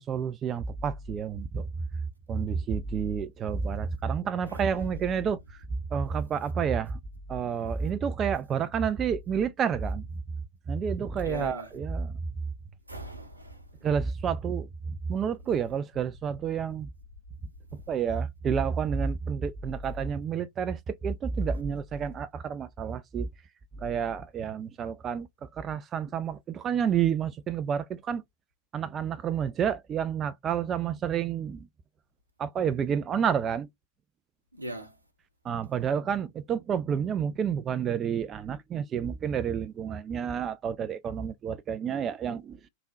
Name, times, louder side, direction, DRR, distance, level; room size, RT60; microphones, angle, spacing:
voice 1, 0.0-1.7 2.3-5.6 5.9-7.0 7.3-10.1 10.7-12.2 13.8-14.7 15.1-16.9 17.7-23.3 23.8-28.2 28.7-31.7 32.4-33.7 35.4-42.6, right 7 dB, 25° right, 0.4 m, -29 dB
voice 2, 4.5-5.2 11.2-11.7 12.9-13.8 15.4-15.5 34.5-35.0, right 1 dB, 85° right, 0.8 m, -40 dB
3.5 x 2.0 x 4.0 m
figure-of-eight pair, 90°, 0 cm